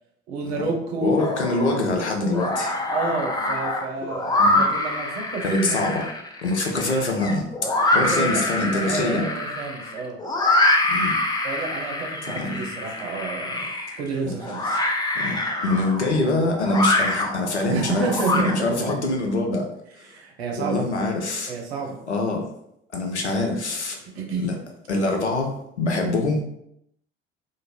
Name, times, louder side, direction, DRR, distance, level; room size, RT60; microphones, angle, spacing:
voice 1, 0.3-1.2 2.9-5.8 7.9-10.2 11.4-13.7 14.0-14.8 17.7-18.5 20.0-20.8 21.5-22.0 24.1-24.5, right 4 dB, 70° right, 2 dB, 0.6 m, -29 dB
voice 2, 1.0-2.7 4.4-4.6 5.4-6.0 6.4-7.5 7.9-9.3 10.9-11.2 12.3-12.7 14.2-14.3 15.1-19.7 20.6-21.5 22.1-22.5 22.9-24.0 24.4-24.6 24.9-26.4, left 2 dB, 90° left, 1 dB, 0.5 m, -24 dB
sound 1, 1.2-1.8 2.2-18.9, left 2 dB, 15° left, 0.4 m, -25 dB
2.6 x 2.5 x 2.9 m, 0.77 s
figure-of-eight pair, 55°, 33 cm